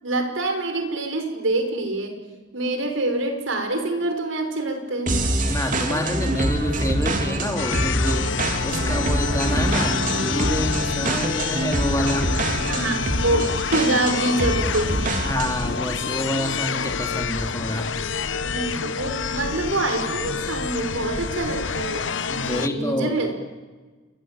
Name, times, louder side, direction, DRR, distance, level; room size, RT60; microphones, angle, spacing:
voice 1, 0.0-2.2 2.5-5.2 8.7-8.9 12.7-15.3 18.4-22.0 22.4-23.3, right 2 dB, 85° right, 6 dB, 5.4 m, -26 dB
sound 1, 5.1-15.7, right 1 dB, 40° right, 3.5 m, -25 dB
voice 2, 5.5-8.3 8.6-12.3 15.2-17.9 22.3-23.2, left 1 dB, 15° left, 3 dB, 3.3 m, -27 dB
sound 2, 7.6-22.7, left 5 dB, 75° left, 1.0 m, -28 dB
28.5 x 22.5 x 9.2 m, 1.3 s
head